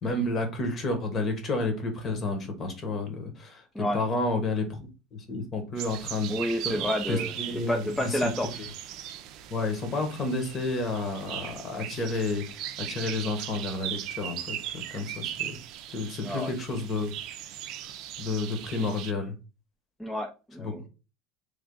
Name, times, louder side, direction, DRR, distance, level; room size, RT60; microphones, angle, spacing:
voice 1, 0.0-3.6 3.9-6.3 6.6-8.3 9.5-12.4 12.8-15.6 15.9-17.1 17.8-17.9 18.2-19.3 20.6-20.9, left 2 dB, 35° left, 5 dB, 1.1 m, -31 dB
sound 1, 5.8-19.1, right 11 dB, 65° right, 0.4 m, -38 dB
voice 2, 6.3-8.7 16.2-16.5 20.0-20.8, left 1 dB, 5° left, 3 dB, 0.4 m, -30 dB
3.3 x 2.4 x 3.7 m, 0.31 s
supercardioid pair, 110°, 0 cm